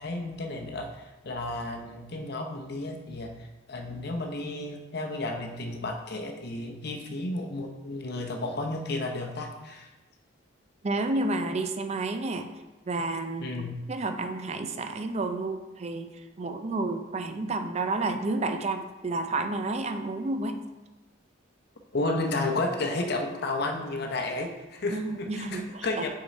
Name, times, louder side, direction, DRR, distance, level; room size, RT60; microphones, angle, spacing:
voice 1, 0.0-3.3 3.7-9.9 13.4-13.8 21.9-26.1, left 2 dB, 55° left, 3 dB, 0.7 m, -32 dB
voice 2, 10.8-12.5 12.9-13.6 13.9-16.1 16.4-20.6 24.9-26.1, right 2 dB, 35° right, 7 dB, 0.4 m, -30 dB
6.4 x 3.7 x 4.1 m, 1.1 s
head